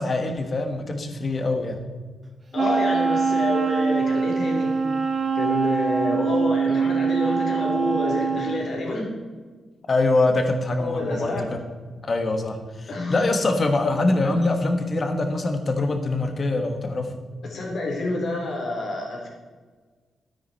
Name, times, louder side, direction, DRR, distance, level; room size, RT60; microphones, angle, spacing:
voice 1, 0.0-1.8 9.9-11.6 12.0-17.1, left 2 dB, 35° left, 6 dB, 1.4 m, -24 dB
voice 2, 2.5-4.7 5.3-9.1 10.8-11.5 12.9-13.3 17.4-19.3, left 2 dB, 55° left, -1 dB, 3.5 m, -28 dB
Wind instrument woodwind instrument, 2.5-8.7, right 5 dB, 30° right, 1.1 m, -23 dB
12.5 x 9.9 x 4.2 m, 1.4 s
wide cardioid pair, 155°, 0 cm